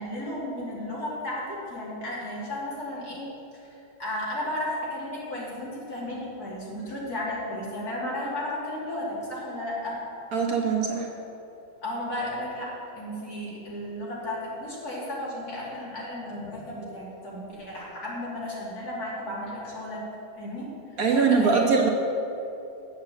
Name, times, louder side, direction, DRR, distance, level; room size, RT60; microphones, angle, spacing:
voice 1, 0.0-3.3 3.5-10.0 11.8-20.0 20.4-20.7 21.1-21.6, left 1 dB, 60° left, -6 dB, 3.2 m, -34 dB
voice 2, 10.3-11.1 21.0-21.9, right 5 dB, 60° right, 1 dB, 1.3 m, -22 dB
8.0 x 7.3 x 7.6 m, 2.8 s
omnidirectional pair, 1.9 m